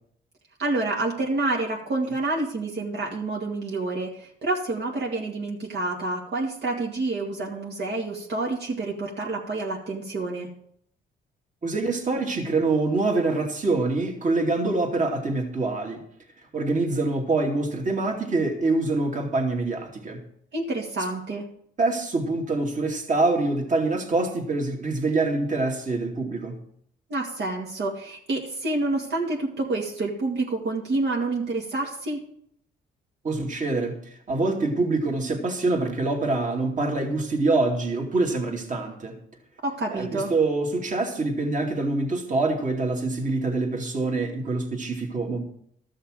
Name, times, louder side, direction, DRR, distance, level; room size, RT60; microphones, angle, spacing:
voice 1, 0.6-10.5 20.5-21.4 27.1-32.2 39.6-40.3, right 2 dB, 60° right, -1 dB, 2.3 m, -28 dB
voice 2, 11.6-16.0 16.5-20.2 21.8-26.6 33.2-34.0 34.3-39.2 39.9-45.4, right 3 dB, 40° right, 2 dB, 2.6 m, -25 dB
13.5 x 6.5 x 6.4 m, 0.67 s
cardioid pair, 90°, 20 cm